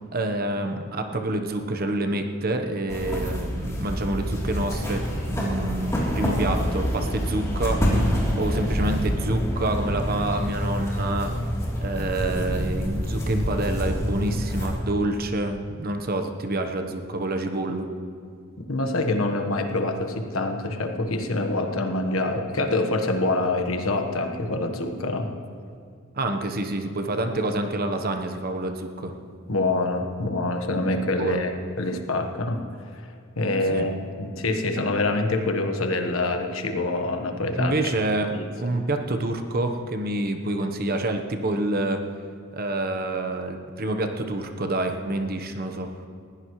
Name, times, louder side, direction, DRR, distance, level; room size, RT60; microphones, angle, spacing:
voice 1, 0.1-11.3 11.8-17.9 26.2-29.1 31.2-31.4 33.7-33.9 37.6-38.3 38.6-42.0 42.5-45.9, right 1 dB, 50° right, 5 dB, 1.1 m, -27 dB
sound 1, 2.9-14.7, equal, 15° left, 3.3 m, -27 dB
voice 2, 18.6-25.3 29.5-32.6 32.9-33.1 33.4-37.7 38.3-38.4, left 2 dB, 85° left, 5 dB, 1.3 m, -26 dB
20.5 x 16.0 x 3.2 m, 2.4 s
head